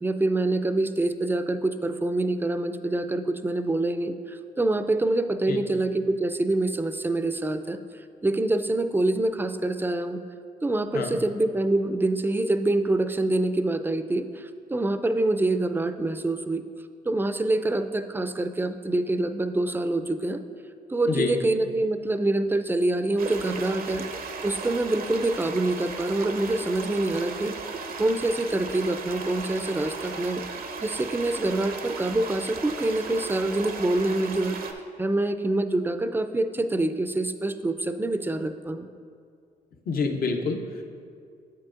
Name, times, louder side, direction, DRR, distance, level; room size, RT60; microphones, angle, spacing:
voice 1, 0.0-7.8 8.2-10.2 10.6-16.6 17.0-20.4 20.9-24.1 24.4-27.5 28.0-30.4 30.8-38.9, right 2 dB, 10° right, 10 dB, 0.4 m, -26 dB
voice 2, 21.1-21.4 39.9-40.8, left 4 dB, 60° left, 4 dB, 0.7 m, -27 dB
sound 1, 23.2-34.7, right 4 dB, 60° right, 0.6 m, -36 dB
8.3 x 7.5 x 2.5 m, 2.3 s
supercardioid pair, 55°, 17 cm